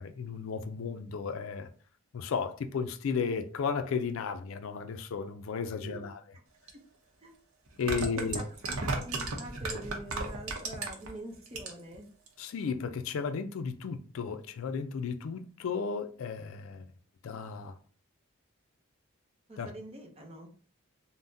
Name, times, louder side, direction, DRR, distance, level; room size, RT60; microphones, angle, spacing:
voice 1, 0.0-1.7 2.1-6.2 7.8-8.4 12.4-16.9 17.2-17.7 19.6-19.7, left 5 dB, 75° left, 0.4 m, -34 dB
sound 1, 6.7-6.8 7.7-11.1 11.5-12.0 12.3-12.4, right 3 dB, 90° right, 0.7 m, -34 dB
voice 2, 8.0-12.1 19.5-20.5, right 1 dB, 30° right, 0.6 m, -44 dB
3.5 x 2.0 x 2.6 m
head